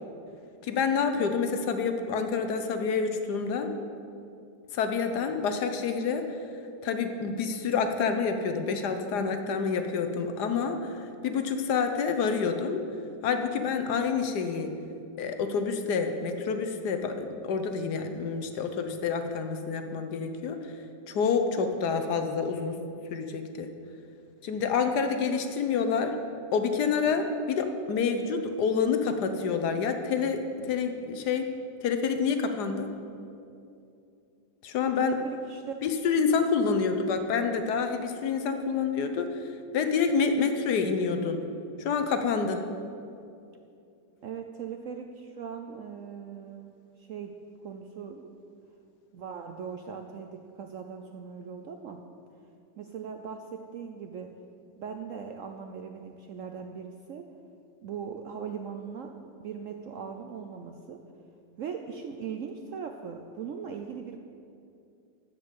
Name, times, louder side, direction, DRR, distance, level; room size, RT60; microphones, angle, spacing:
voice 1, 0.6-3.7 4.7-6.4 6.8-12.8 13.2-14.7 15.2-20.7 21.1-22.8 23.1-23.7 24.4-26.2 26.5-31.5 31.8-32.9 34.6-35.1 35.8-39.4 39.7-41.4 41.8-42.6, left 5 dB, 70° left, 7 dB, 1.3 m, -28 dB
voice 2, 35.0-35.8 44.2-46.7 47.0-47.3 47.6-48.3 49.1-52.0 52.8-54.3 54.8-57.2 57.8-61.0 61.6-64.2, right 6 dB, 70° right, 5 dB, 0.8 m, -39 dB
12.5 x 5.2 x 8.3 m, 2.6 s
omnidirectional pair, 1.9 m